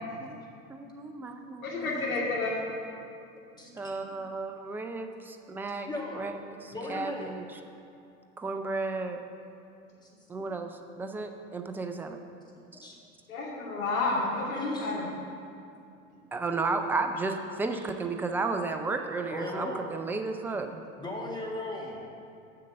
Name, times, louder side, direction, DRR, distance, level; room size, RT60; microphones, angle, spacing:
voice 1, 0.7-2.1 3.8-5.9 6.1-7.5 8.4-9.2 10.3-12.2 12.7-12.8 16.3-20.8, right 3 dB, 5° right, 5 dB, 0.3 m, -33 dB
voice 2, 1.6-2.6 13.3-15.1, left 3 dB, 80° left, -3 dB, 2.4 m, -30 dB
voice 3, 5.9-6.3 6.7-7.3 10.0-10.1 10.4-10.5 12.7-13.0 14.6-14.9 19.3-19.8 21.0-22.0, left 1 dB, 10° left, -2 dB, 1.9 m, -37 dB
7.5 x 6.7 x 6.5 m, 2.5 s
hypercardioid pair, 85°, 41 cm